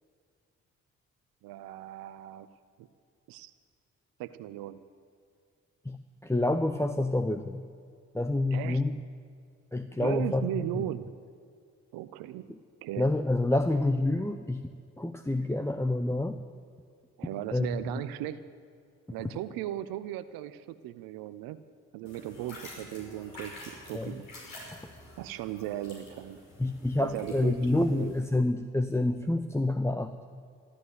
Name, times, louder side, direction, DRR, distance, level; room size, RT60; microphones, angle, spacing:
voice 1, 1.4-2.5 2.8-2.9 3.3-3.5 4.2-4.8 8.5-8.8 10.0-11.1 11.9-12.5 12.8-13.1 17.2-18.4 19.1-21.6 21.9-23.5 23.8-24.3 25.2-26.4 27.0-28.1, right 13 dB, 75° right, 14 dB, 0.6 m, -37 dB
voice 2, 6.2-7.6 8.1-9.0 9.7-10.5 13.0-14.6 15.0-16.4 17.5-18.0 23.9-24.2 26.6-30.1, left 2 dB, 5° left, 8 dB, 0.8 m, -28 dB
sound 1, 22.1-28.2, left 1 dB, 65° left, 5.5 m, -48 dB
13.0 x 13.0 x 8.2 m, 2.2 s
hypercardioid pair, 40°, 35 cm